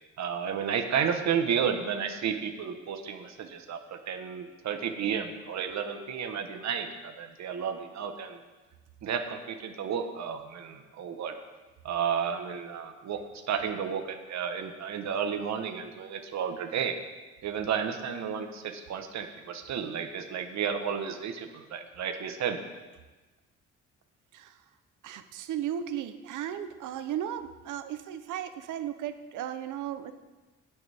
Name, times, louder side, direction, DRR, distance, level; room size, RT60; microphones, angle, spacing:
voice 1, 0.2-8.4 9.0-11.3 11.8-13.2 13.5-17.0 17.4-22.6, right 7 dB, 65° right, 5 dB, 1.2 m, -32 dB
voice 2, 25.0-30.1, right 10 dB, 80° right, 10 dB, 0.8 m, -35 dB
19.0 x 7.0 x 3.5 m, 1.2 s
cardioid pair, 90°, 30 cm